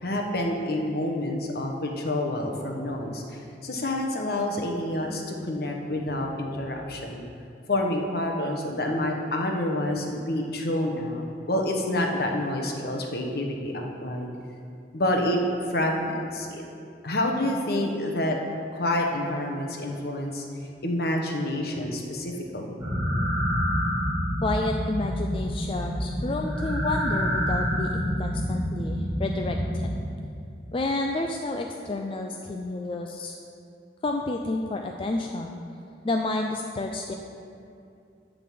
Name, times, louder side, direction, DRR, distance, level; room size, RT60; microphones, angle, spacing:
voice 1, 0.0-7.2 7.7-14.3 14.9-15.4 15.7-16.6 17.0-18.4 18.7-20.4 20.8-22.9, left 1 dB, 60° left, 1 dB, 1.1 m, -28 dB
sound 1, 22.8-29.9, equal, 10° right, 1.3 m, -27 dB
voice 2, 24.4-29.9 30.7-33.4 34.0-35.6 36.0-37.1, left 2 dB, 30° left, 2 dB, 0.4 m, -30 dB
11.0 x 3.9 x 7.6 m, 2.5 s
head